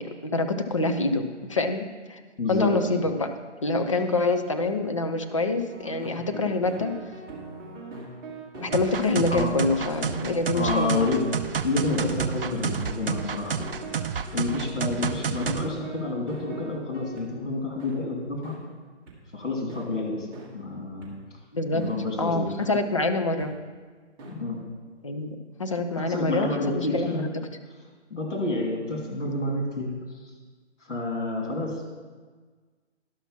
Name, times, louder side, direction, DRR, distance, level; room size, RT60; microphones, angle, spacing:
voice 1, 0.0-2.2 2.5-3.3 3.6-6.9 8.6-11.1 21.5-21.8 22.2-23.5 25.0-27.3, left 2 dB, 30° left, 6 dB, 0.5 m, -26 dB
voice 2, 2.4-2.8 9.3-9.6 10.5-11.2 11.6-13.7 14.3-18.6 19.3-20.3 20.5-21.1 21.7-22.5 24.3-24.6 26.0-27.2 28.1-29.9 30.9-32.0, left 2 dB, 80° left, -1 dB, 2.9 m, -29 dB
sound 1, 5.7-17.3 17.8-17.9 18.4-18.6 19.1-19.2 19.7-19.8 20.3-20.5 21.0-21.1 21.8-21.9 22.6-22.7 23.4-23.5 24.2-24.3, right 3 dB, 20° right, 1.7 m, -41 dB
sound 2, 8.7-15.7, right 6 dB, 50° right, 0.6 m, -30 dB
11.5 x 5.9 x 5.7 m, 1.5 s
figure-of-eight pair, 150°, 36 cm